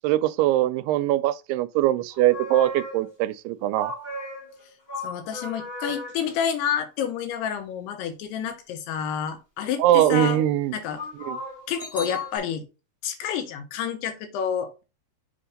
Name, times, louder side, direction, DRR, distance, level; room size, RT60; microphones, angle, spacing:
voice 1, 0.0-3.9 9.8-10.7 11.3-11.4, right 13 dB, 85° right, 2.6 m, -22 dB
sound 1, 2.1-3.3 3.7-6.2 10.9-12.4, left 1 dB, 25° left, 1.2 m, -36 dB
voice 2, 5.0-10.4 10.7-11.0 11.7-12.6 13.0-14.8, left 8 dB, 85° left, 3.0 m, -29 dB
7.4 x 2.6 x 5.1 m
omnidirectional pair, 4.6 m